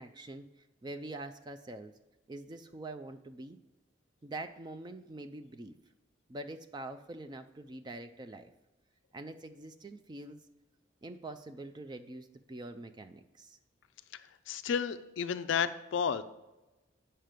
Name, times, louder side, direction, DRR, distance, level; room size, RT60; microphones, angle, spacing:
voice 1, 0.0-1.9 2.3-3.6 4.2-5.8 6.3-8.5 9.1-10.4 11.0-13.6, right 2 dB, 20° right, 8 dB, 0.3 m, -45 dB
voice 2, 14.5-16.2, left 7 dB, 65° left, 10 dB, 0.4 m, -32 dB
9.0 x 5.6 x 5.1 m, 1.0 s
head